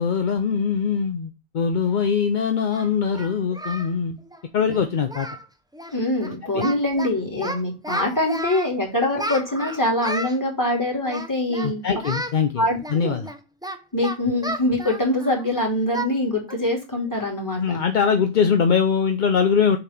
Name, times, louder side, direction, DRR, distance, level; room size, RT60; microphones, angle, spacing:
voice 1, 0.0-4.2 4.5-5.3 6.5-6.6 11.6-13.3 17.6-19.8, left 6 dB, 50° left, 6 dB, 0.6 m, -22 dB
Singing, 1.9-2.0 2.7-3.9 4.2-4.4 4.7-4.8 5.1-5.5 5.7-5.9 6.2-7.1 7.4-8.7 9.2-10.4 11.1-11.7 12.0-12.4 12.8-15.5 15.9-16.1 16.5-16.7 17.1-17.2 17.7-17.9, right 1 dB, 5° right, 0.3 m, -32 dB
voice 2, 5.9-11.8 12.6-12.8 13.0-13.1 13.9-17.8, left 1 dB, 15° left, -2 dB, 3.0 m, -24 dB
6.8 x 3.7 x 5.9 m, 0.27 s
omnidirectional pair, 1.4 m